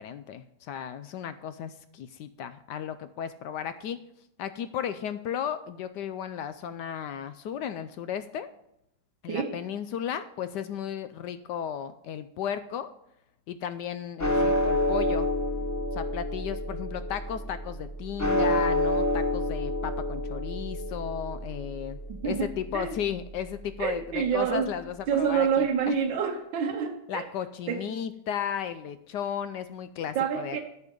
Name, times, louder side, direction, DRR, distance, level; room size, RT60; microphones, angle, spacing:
voice 1, 0.0-4.0 4.4-8.5 9.2-12.9 13.5-15.3 15.9-22.0 22.2-26.0 27.1-30.6, left 8 dB, 75° left, 1.1 m, -34 dB
sound 1, 14.2-24.6, left 1 dB, 10° left, 0.8 m, -29 dB
voice 2, 22.1-22.5 22.7-23.0 23.8-24.7 25.1-27.2 27.7-27.8 30.1-30.6, right 7 dB, 75° right, 1.6 m, -27 dB
10.5 x 8.3 x 5.2 m
omnidirectional pair, 2.1 m